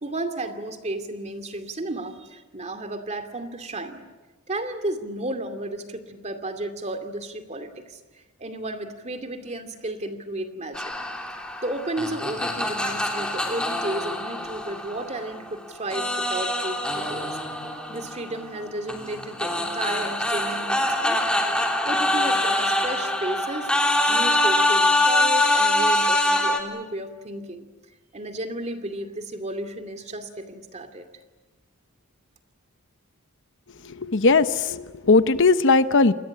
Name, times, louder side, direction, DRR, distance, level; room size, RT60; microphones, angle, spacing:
voice 1, 0.0-4.0 4.5-8.0 8.4-10.9 11.6-17.4 17.9-21.2 21.8-23.8 24.1-27.7 28.1-31.1, right 1 dB, 30° right, 8 dB, 2.5 m, -33 dB
sound 1, 10.7-15.5 15.9-26.6, left 1 dB, 5° left, 3.1 m, -24 dB
voice 2, 33.8-36.1, left 3 dB, 55° left, 11 dB, 0.9 m, -19 dB
28.5 x 21.5 x 8.6 m, 1.3 s
head